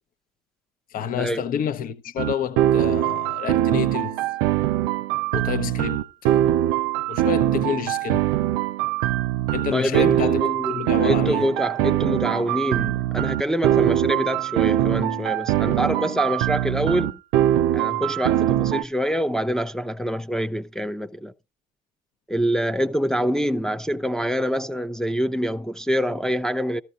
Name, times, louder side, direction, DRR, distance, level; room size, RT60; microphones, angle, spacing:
voice 1, 0.9-4.1 5.3-6.3 7.1-8.2 9.5-10.4 10.7-11.4, left 9 dB, 50° left, 0.8 m, -29 dB
sound 1, 2.2-18.8, right 13 dB, 90° right, 0.5 m, -22 dB
voice 2, 9.7-17.2 17.7-21.3 22.3-26.8, equal, 5° left, 0.6 m, -25 dB
14.0 x 13.0 x 2.5 m
supercardioid pair, 95°, 19 cm